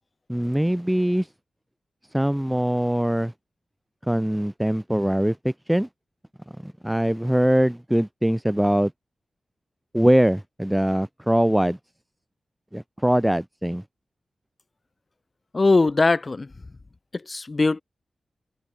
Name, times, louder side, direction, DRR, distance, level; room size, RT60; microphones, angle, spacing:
voice 1, 0.3-1.3 2.1-3.3 4.0-5.9 6.6-8.9 9.9-11.8 12.7-13.8, equal, 5° right, 1.4 m, -22 dB
voice 2, 15.5-16.5 17.3-17.8, left 3 dB, 30° left, 4.8 m, -20 dB
wide cardioid pair, 145°, 0 cm